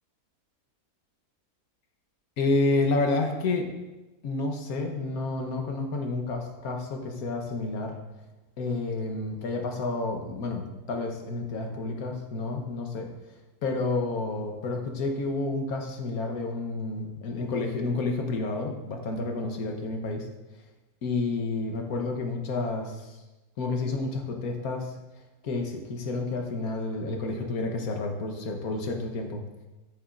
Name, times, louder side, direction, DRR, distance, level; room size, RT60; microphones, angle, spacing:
voice 1, 2.4-3.7 4.2-8.0 8.6-13.1 13.6-20.3 21.0-23.2 23.6-24.9 25.4-29.4, left 3 dB, 75° left, 3 dB, 1.5 m, -30 dB
13.5 x 7.1 x 2.6 m, 1.1 s
omnidirectional pair, 1.6 m